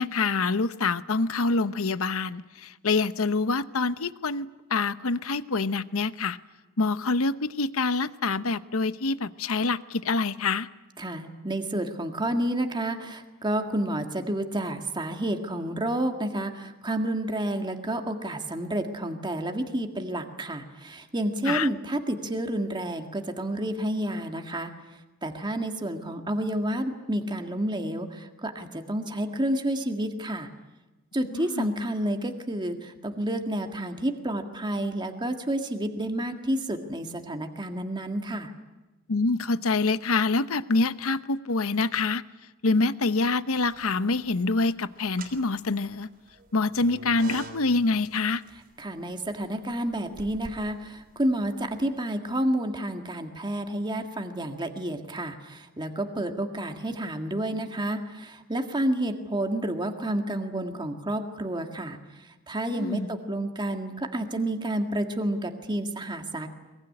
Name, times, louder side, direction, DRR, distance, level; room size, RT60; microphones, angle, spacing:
voice 1, 0.0-6.4 6.8-10.7 21.5-21.7 31.3-31.7 39.1-42.2 42.6-46.1 46.5-48.4 62.7-63.1, left 3 dB, 65° left, 14 dB, 0.9 m, -26 dB
voice 2, 11.0-24.7 25.2-30.5 31.1-38.5 48.8-62.0 62.5-66.5, right 1 dB, 20° right, 5 dB, 1.8 m, -30 dB
sound 1, 43.6-44.3 45.0-51.8, right 3 dB, 40° right, 3.6 m, -47 dB
22.5 x 22.0 x 9.8 m, 1.1 s
head